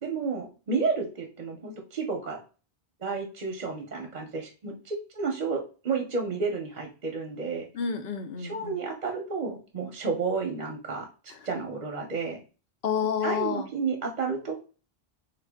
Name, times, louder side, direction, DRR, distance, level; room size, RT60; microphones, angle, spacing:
voice 1, 0.0-2.4 3.0-7.7 8.4-11.1 11.4-12.4 13.2-14.5, right 4 dB, 50° right, 0.6 m, -31 dB
voice 2, 7.7-8.8 11.3-11.5 12.8-13.7, left 7 dB, 70° left, 0.8 m, -30 dB
3.6 x 2.2 x 3.4 m
omnidirectional pair, 1.1 m